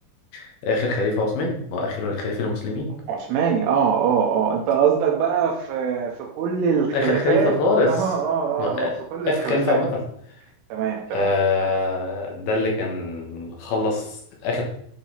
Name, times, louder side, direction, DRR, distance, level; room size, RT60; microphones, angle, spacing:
voice 1, 0.3-2.9 6.9-8.1 8.6-9.0 9.3-10.0 11.1-14.6, left 2 dB, 65° left, 0 dB, 2.7 m, -24 dB
voice 2, 3.1-7.5 7.8-9.8 10.7-11.3, right 7 dB, 85° right, 0 dB, 3.5 m, -23 dB
11.0 x 4.1 x 4.0 m, 0.69 s
omnidirectional pair, 5.5 m